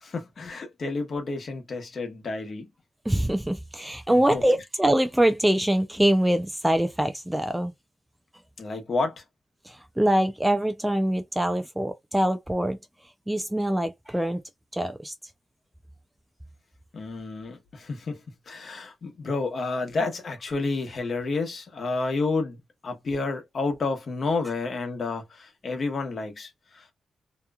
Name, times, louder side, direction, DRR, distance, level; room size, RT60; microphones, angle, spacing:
voice 1, 0.0-2.7 4.3-4.4 8.6-9.2 16.9-18.2 18.5-26.9, left 3 dB, 50° left, 1.1 m, -30 dB
voice 2, 3.1-7.7 9.7-12.8 13.3-14.4 14.7-15.1, right 1 dB, 5° right, 0.4 m, -24 dB
2.9 x 2.3 x 2.3 m
cardioid pair, 95°, 0 cm